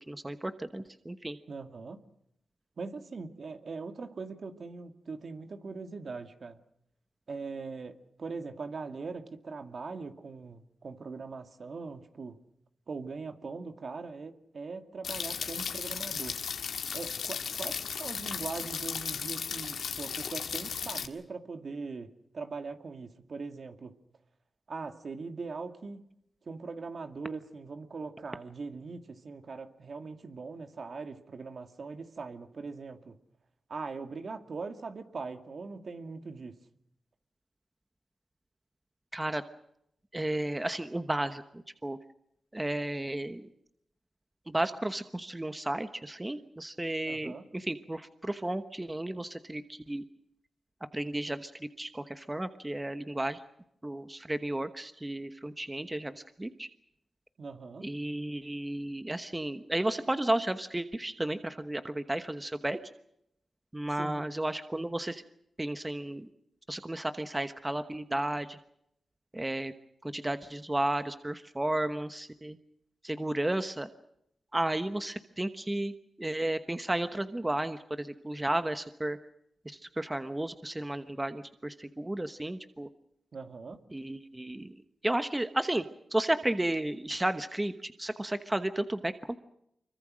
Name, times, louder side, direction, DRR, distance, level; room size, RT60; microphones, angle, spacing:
voice 1, 0.1-1.4 39.1-39.4 40.1-42.0 42.5-43.5 44.5-50.0 50.9-51.5 51.8-53.4 53.8-56.7 57.8-62.8 63.7-65.2 65.6-66.3 66.7-68.6 69.3-69.7 70.0-72.6 73.0-73.9 74.5-79.2 79.6-82.9 83.9-84.7 85.0-85.8 86.1-89.4, right 1 dB, 15° right, 10 dB, 1.1 m, -33 dB
voice 2, 1.5-2.0 2.8-6.6 7.3-12.4 12.9-16.4 16.9-24.0 24.7-26.1 26.5-33.2 33.7-36.6 47.1-47.4 57.4-57.9 63.9-64.2 83.3-83.8, right 4 dB, 55° right, 7 dB, 2.1 m, -41 dB
sound 1, 15.0-21.1, left 6 dB, 80° left, 1.9 m, -35 dB
25.5 x 23.5 x 6.3 m, 0.78 s
wide cardioid pair, 90°, 0 cm